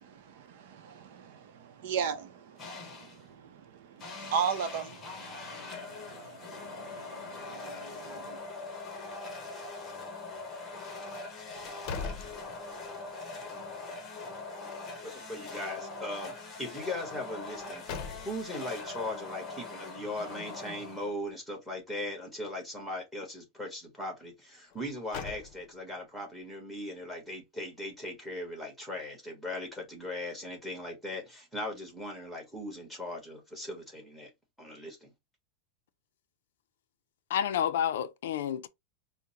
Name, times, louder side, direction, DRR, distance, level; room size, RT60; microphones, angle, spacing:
voice 1, 0.0-8.4, right 7 dB, 60° right, 0.7 m, -38 dB
sound 1, 2.6-3.3 4.0-21.3, left 3 dB, 15° left, 0.9 m, -42 dB
sound 2, 11.5-13.1 13.5-13.6 17.4-18.7 24.7-26.0, left 5 dB, 40° left, 0.7 m, -41 dB
voice 2, 15.0-16.3 16.6-17.8 18.2-34.3 34.6-35.1, left 1 dB, ahead, 1.3 m, -39 dB
voice 3, 37.3-38.7, left 9 dB, 75° left, 0.4 m, -29 dB
5.0 x 2.1 x 2.8 m
supercardioid pair, 165°, 0 cm